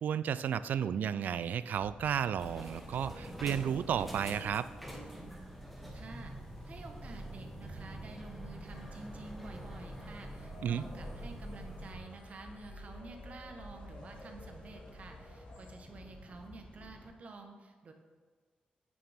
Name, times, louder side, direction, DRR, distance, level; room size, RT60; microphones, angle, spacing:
voice 1, 0.0-4.7 10.6-10.8, right 8 dB, 80° right, 15 dB, 0.3 m, -33 dB
sound 1, 1.7-17.1, left 1 dB, 35° left, 1.9 m, -53 dB
sound 2, 2.4-11.9, right 1 dB, ahead, 1.5 m, -45 dB
voice 2, 5.9-6.3 6.6-17.9, right 3 dB, 55° right, 4 dB, 1.2 m, -50 dB
sound 3, 8.7-15.7, left 2 dB, 90° left, 2.6 m, -56 dB
8.5 x 7.3 x 3.6 m, 1.5 s
cardioid pair, 105°, 3 cm